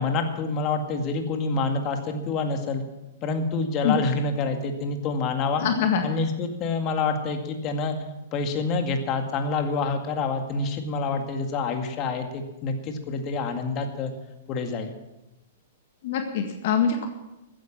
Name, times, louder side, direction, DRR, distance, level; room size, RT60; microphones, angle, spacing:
voice 1, 0.0-2.8 3.2-5.7 6.0-8.0 8.3-14.1 14.5-14.9, left 4 dB, 35° left, 5 dB, 2.1 m, -27 dB
voice 2, 5.6-6.0 16.0-17.1, left 7 dB, 60° left, 5 dB, 1.7 m, -23 dB
15.0 x 10.0 x 7.5 m, 0.97 s
hypercardioid pair, 125°, 0 cm